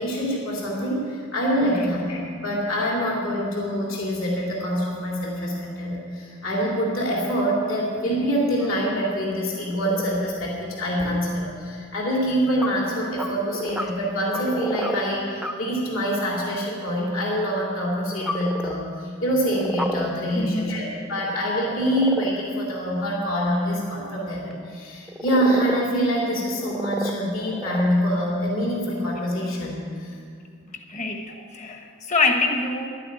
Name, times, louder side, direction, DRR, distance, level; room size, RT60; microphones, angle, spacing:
voice 1, 0.0-30.2, equal, 65° left, -3 dB, 2.8 m, -25 dB
voice 2, 1.7-2.1 20.3-20.9 29.1-29.3 30.9-32.9, left 3 dB, 35° left, 4 dB, 1.2 m, -26 dB
sound 1, 8.6-8.7 9.7-10.8 12.6-12.7 12.9-13.9 14.3-15.0 15.4-15.5 18.0-18.9 19.3-20.1 20.5-22.4 24.5-24.6 25.1-25.9 26.5-27.1 27.4-27.9, equal, ahead, 0.6 m, -30 dB
12.0 x 9.0 x 8.9 m, 2.3 s
head